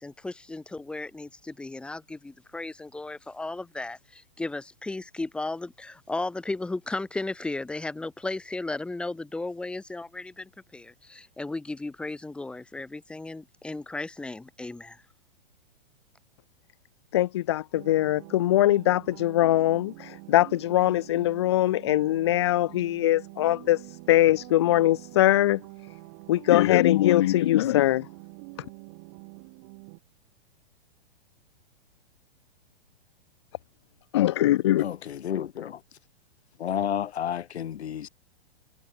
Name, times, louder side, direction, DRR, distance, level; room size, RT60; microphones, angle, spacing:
voice 1, 0.0-15.0, left 2 dB, 5° left, 2.4 m, -35 dB
voice 2, 17.1-25.6 26.3-28.1 34.1-34.9, left 14 dB, 25° left, 0.5 m, -22 dB
sound 1, 17.7-30.0, right 34 dB, 30° right, 4.8 m, -46 dB
voice 3, 34.8-35.8 36.6-38.1, left 9 dB, 90° left, 1.4 m, -31 dB
hypercardioid pair, 170°, 32 cm